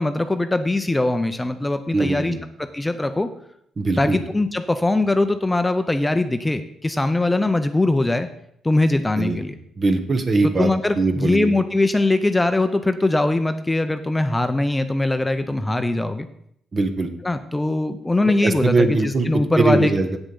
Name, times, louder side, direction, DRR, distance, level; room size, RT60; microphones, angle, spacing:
voice 1, 0.0-2.3 2.7-3.3 4.0-8.3 8.6-9.5 10.4-16.3 17.2-19.9, left 2 dB, 10° left, 9 dB, 0.6 m, -21 dB
voice 2, 1.9-2.4 3.8-4.2 9.2-9.4 9.8-10.7 11.0-11.5 16.7-17.1 18.4-20.2, right 3 dB, 35° right, 8 dB, 1.1 m, -21 dB
8.2 x 7.2 x 5.4 m, 0.71 s
cardioid pair, 90°, 0 cm